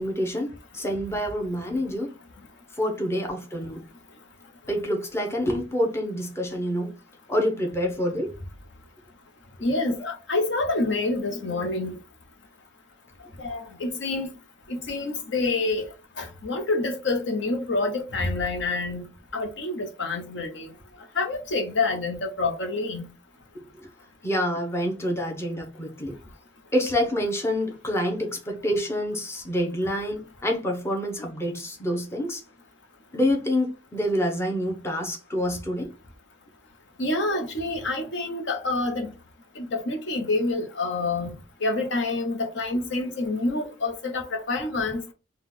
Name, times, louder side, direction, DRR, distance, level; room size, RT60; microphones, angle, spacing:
voice 1, 0.0-2.1 2.8-3.8 4.7-6.9 7.3-8.3 24.2-26.2 26.7-32.4 33.1-35.9, equal, 15° left, 0.8 m, -27 dB
voice 2, 9.6-12.0 13.4-14.3 14.7-15.9 16.2-19.0 19.3-20.7 21.2-23.1 37.0-39.1 39.6-41.3 41.6-45.0, left 2 dB, 60° left, 0.8 m, -27 dB
3.8 x 2.3 x 4.2 m
head